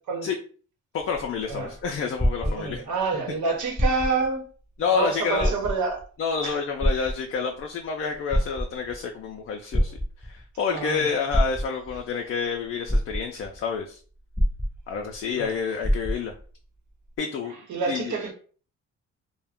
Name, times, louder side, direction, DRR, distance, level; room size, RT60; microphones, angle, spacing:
voice 1, 0.9-2.8 4.8-5.5 6.2-14.0 14.9-16.3 17.2-17.5 17.9-18.1, left 5 dB, 45° left, 0.4 m, -29 dB
sound 1, 1.0-3.1 3.7-4.3 4.8-4.9 5.3-6.1 6.8-7.6 8.1-9.0 9.7-10.5 11.3-12.0 12.5-12.6 12.9-13.6 14.3-15.2 15.4-15.5 15.8-16.5 17.2-17.3, equal, 5° right, 0.7 m, -25 dB
voice 2, 2.4-4.4 4.9-6.0 6.4-6.6 10.7-11.2 15.4-15.5 17.7-18.3, right 4 dB, 75° right, 0.9 m, -28 dB
2.3 x 2.1 x 3.5 m
cardioid pair, 90°, 30 cm